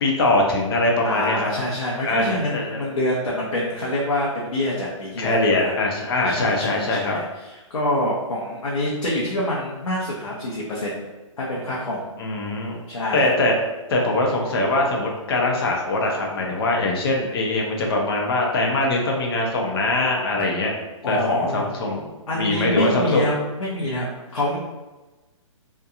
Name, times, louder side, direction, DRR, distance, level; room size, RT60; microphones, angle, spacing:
voice 1, 0.0-1.5 2.0-2.8 5.2-7.2 12.2-12.8 13.1-13.5 13.9-20.8 21.1-23.3, left 2 dB, 45° left, 0 dB, 0.6 m, -22 dB
voice 2, 1.0-5.7 6.2-11.0 11.4-12.1 12.9-13.3 21.0-21.7 22.3-24.6, left 1 dB, 85° left, -6 dB, 0.7 m, -26 dB
2.8 x 2.2 x 2.4 m, 1.1 s
hypercardioid pair, 145°, 17 cm